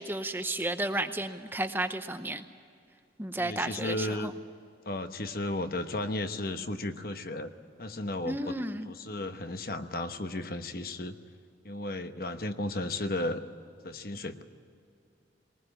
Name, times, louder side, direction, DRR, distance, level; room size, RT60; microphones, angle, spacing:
voice 1, 0.0-2.4 3.2-4.3 8.2-8.9, right 1 dB, 10° right, 8 dB, 0.8 m, -32 dB
voice 2, 3.4-4.3 4.9-7.5 7.8-8.6 8.9-11.2 11.6-13.4 13.8-14.4, left 2 dB, 55° left, 8 dB, 1.1 m, -34 dB
21.0 x 19.5 x 8.8 m, 2.4 s
head